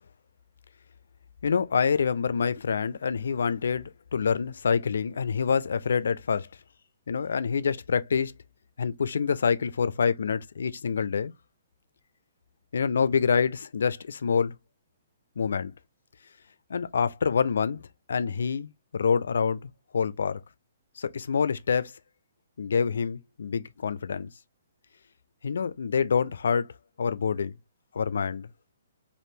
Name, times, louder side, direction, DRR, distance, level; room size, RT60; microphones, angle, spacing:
voice 1, 1.4-6.5 7.1-8.3 8.8-11.3 12.7-14.6 15.4-15.7 16.7-20.4 21.0-21.9 22.6-24.3 25.4-26.7 27.0-27.5 27.9-28.5, left 6 dB, 70° left, 0.3 m, -26 dB
3.4 x 2.5 x 2.6 m
figure-of-eight pair, 125°, 0 cm